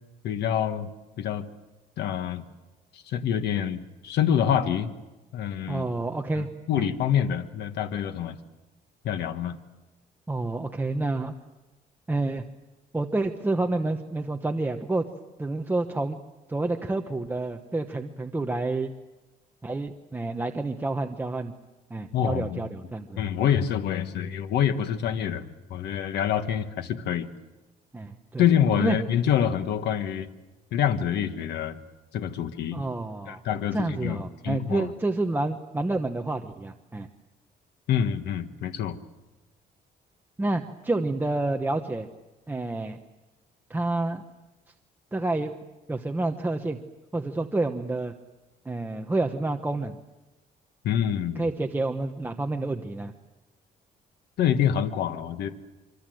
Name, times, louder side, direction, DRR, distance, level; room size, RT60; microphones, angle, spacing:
voice 1, 0.2-0.9 1.2-1.4 2.0-2.4 2.9-4.9 5.3-5.8 6.3-8.4 9.0-9.6 22.1-22.7 23.2-27.3 28.4-30.3 30.7-31.8 32.1-32.8 33.3-34.9 37.9-39.0 50.8-51.5 54.4-55.5, left 9 dB, 85° left, 9 dB, 1.4 m, -26 dB
voice 2, 5.7-6.5 6.8-6.9 10.3-11.3 12.1-12.4 12.9-15.1 15.4-16.2 16.5-18.9 19.6-21.5 21.9-23.2 27.9-28.4 28.8-29.0 32.7-33.4 33.7-37.1 40.4-42.1 42.5-43.0 43.7-44.2 45.1-45.5 45.9-46.8 47.1-48.1 48.6-50.0 51.4-53.1, right 2 dB, 10° right, 4 dB, 1.1 m, -29 dB
25.5 x 25.0 x 7.8 m, 1.1 s
cardioid pair, 135°, 17 cm